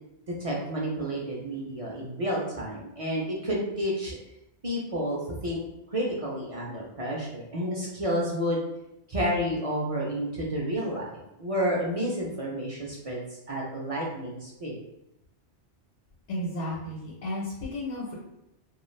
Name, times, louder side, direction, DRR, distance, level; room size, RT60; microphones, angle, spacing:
voice 1, 0.4-4.2 4.6-5.6 5.9-8.6 9.1-14.8, equal, 50° right, -3 dB, 0.4 m, -30 dB
voice 2, 16.3-18.1, left 1 dB, 90° left, -4 dB, 1.0 m, -33 dB
2.3 x 2.3 x 3.1 m, 0.86 s
omnidirectional pair, 1.2 m